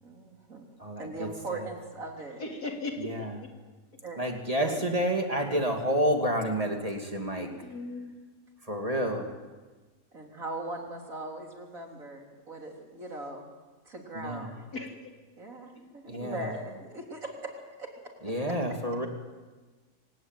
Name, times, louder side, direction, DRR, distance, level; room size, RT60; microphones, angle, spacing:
voice 1, 0.0-0.7 1.0-2.4 4.0-4.2 4.6-4.8 5.5-5.6 7.5-7.6 10.1-13.5 13.9-14.7 15.4-17.5 17.8-17.9 18.2-18.7, right 2 dB, 55° right, 1 dB, 3.9 m, -40 dB
voice 2, 0.8-1.3 3.0-3.3 4.2-7.5 8.7-9.3 14.1-14.5 16.1-16.5 18.2-19.1, equal, 20° right, 3 dB, 2.6 m, -29 dB
voice 3, 2.4-3.1 3.4-3.5 7.3-8.1 14.7-15.0, left 2 dB, 70° left, 1 dB, 4.0 m, -37 dB
26.0 x 16.5 x 9.2 m, 1.3 s
omnidirectional pair, 1.7 m